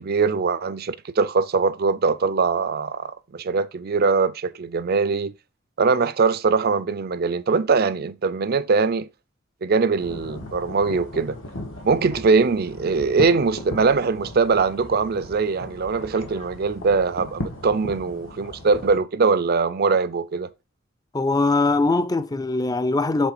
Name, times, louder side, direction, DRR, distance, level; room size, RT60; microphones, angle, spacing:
voice 1, 0.0-5.3 5.8-9.1 9.6-11.4 11.8-20.5, right 4 dB, 50° right, 0.5 m, -22 dB
sound 1, 10.0-19.0, left 1 dB, 75° left, 1.7 m, -37 dB
voice 2, 21.1-23.3, left 3 dB, 20° left, 0.5 m, -21 dB
7.4 x 3.7 x 4.9 m
head